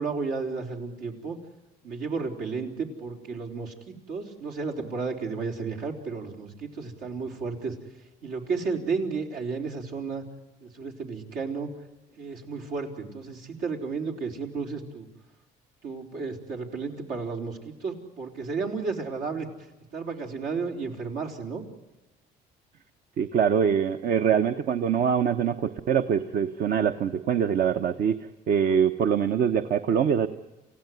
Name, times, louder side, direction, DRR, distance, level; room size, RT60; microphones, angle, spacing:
voice 1, 0.0-1.4 1.8-7.8 8.2-10.2 10.6-11.7 12.2-15.1 15.8-19.5 19.9-21.6, right 4 dB, 80° right, 1 dB, 4.2 m, -33 dB
voice 2, 23.2-30.3, right 8 dB, 60° right, 8 dB, 1.0 m, -24 dB
28.5 x 16.5 x 9.6 m, 1.1 s
cardioid pair, 110°, 17 cm